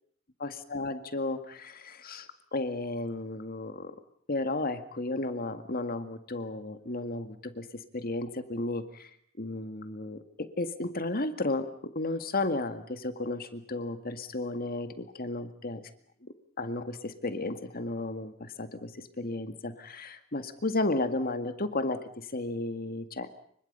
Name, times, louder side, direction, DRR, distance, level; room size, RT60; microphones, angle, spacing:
voice 1, 0.4-3.9 4.3-9.1 9.4-15.8 16.6-23.3, left 2 dB, 50° left, 9 dB, 2.0 m, -33 dB
29.5 x 25.5 x 5.6 m, 0.64 s
head